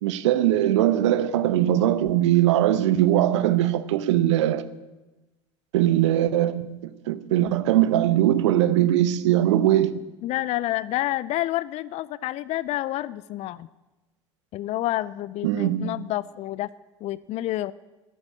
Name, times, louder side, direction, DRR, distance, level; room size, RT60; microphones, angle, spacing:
voice 1, 0.0-4.6 5.7-10.0 15.4-15.9, right 12 dB, 75° right, 0.8 m, -21 dB
voice 2, 10.2-13.7 14.5-16.7 17.0-17.7, left 15 dB, 45° left, 0.4 m, -28 dB
11.5 x 9.3 x 8.4 m
hypercardioid pair, 75°, 15 cm